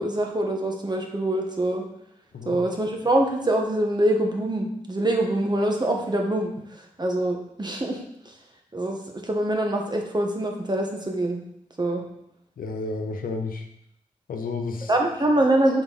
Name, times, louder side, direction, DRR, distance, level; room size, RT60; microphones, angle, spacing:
voice 1, 0.0-1.8 2.4-6.5 7.0-8.0 8.7-11.4 11.8-12.0 14.9-15.8, right 1 dB, 30° right, 1 dB, 1.3 m, -24 dB
voice 2, 12.6-13.7 14.3-14.9, left 3 dB, 85° left, 5 dB, 0.7 m, -31 dB
6.3 x 3.9 x 4.0 m, 0.78 s
cardioid pair, 45°, 14 cm